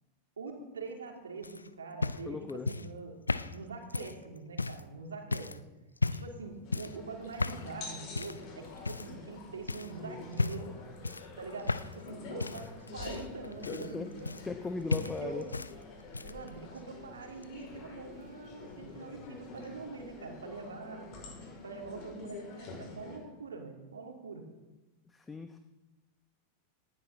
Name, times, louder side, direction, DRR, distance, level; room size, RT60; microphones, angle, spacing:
voice 1, 0.4-2.4 2.7-3.2 3.5-5.6 6.0-10.7 11.4-14.4 14.9-15.6 16.2-21.1 21.6-24.5, right 4 dB, 70° right, 2 dB, 2.9 m, -44 dB
sound 1, 1.4-4.9 5.3-5.6 6.0-6.4 6.7-7.0 7.4-7.7 8.1-8.4 8.8-9.3 9.7-9.9 10.3-10.7 11.0-12.1 12.4-14.6 14.9-15.7 16.0-16.5 17.4-17.5, left 3 dB, 80° left, 0.5 m, -34 dB
voice 2, 2.3-2.7 13.9-14.1 14.5-15.4 25.1-25.6, left 4 dB, 15° left, 7 dB, 1.0 m, -37 dB
sound 2, 6.2-20.4, left 4 dB, 60° left, 3.9 m, -60 dB
sound 3, 6.6-23.2, left 3 dB, 40° left, 5.5 m, -47 dB
19.0 x 14.5 x 4.0 m, 1.1 s
figure-of-eight pair, 90°, 0 cm